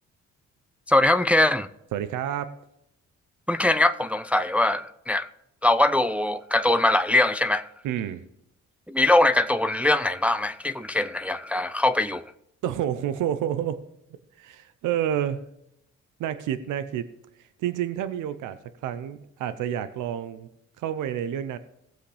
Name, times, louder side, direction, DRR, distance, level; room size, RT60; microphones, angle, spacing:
voice 1, 0.9-1.7 3.5-5.3 5.6-7.7 8.9-12.2, left 2 dB, 5° right, 0.4 m, -22 dB
voice 2, 1.9-2.5 7.8-8.2 12.6-13.8 14.4-15.4 16.2-17.1 17.6-18.6 18.8-20.5 20.8-21.6, right 10 dB, 85° right, 0.7 m, -29 dB
17.5 x 7.7 x 3.4 m
cardioid pair, 90°, 30 cm